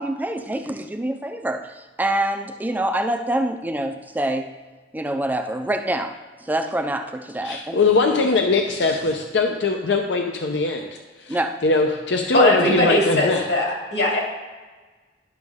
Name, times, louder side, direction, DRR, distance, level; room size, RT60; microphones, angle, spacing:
voice 1, 0.0-4.5 4.9-7.8 11.3-11.6, right 1 dB, 10° right, 6 dB, 0.4 m, -26 dB
voice 2, 7.4-10.9 11.2-13.4, left 3 dB, 90° left, 3 dB, 0.7 m, -21 dB
voice 3, 12.3-14.2, left 1 dB, 70° left, -2 dB, 2.3 m, -20 dB
11.0 x 6.2 x 3.6 m, 1.3 s
head